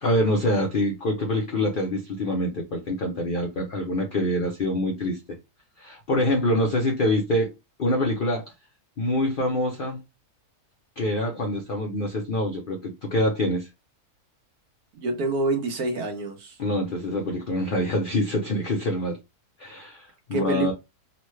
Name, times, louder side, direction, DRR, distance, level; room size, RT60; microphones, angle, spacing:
voice 1, 0.0-5.4 5.8-7.5 7.8-8.5 9.0-10.0 11.0-13.7 16.6-19.2 19.6-20.7, left 1 dB, 60° left, 0.5 m, -25 dB
voice 2, 14.9-16.6 20.3-20.7, right 2 dB, 75° right, 1.2 m, -27 dB
3.1 x 2.1 x 3.0 m
omnidirectional pair, 1.7 m